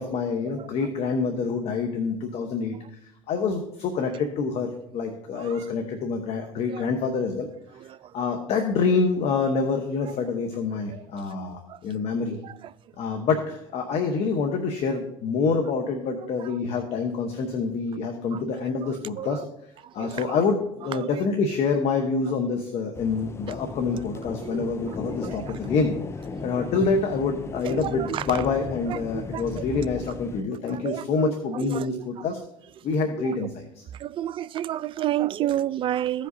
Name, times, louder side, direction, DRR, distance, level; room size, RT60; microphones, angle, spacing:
voice 1, 0.0-2.8 3.3-7.5 8.1-12.4 13.0-19.4 19.9-26.0 26.4-32.4 32.8-33.6, left 4 dB, 55° left, 1.1 m, -26 dB
voice 2, 5.1-5.7 6.7-6.9 7.7-8.1 10.0-10.1 10.9-11.8 12.3-13.2 16.2-16.6 18.3-18.4 18.8-19.5 19.8-20.4 20.8-21.1 23.9-25.8 26.3-26.6 27.6-28.4 28.8-29.6 30.7-32.3 32.8-32.9 33.2-33.5 33.9-36.3, right 12 dB, 45° right, 0.4 m, -33 dB
sound 1, 22.9-30.4, left 4 dB, 20° left, 0.4 m, -36 dB
15.5 x 5.1 x 2.7 m
supercardioid pair, 90°, 12 cm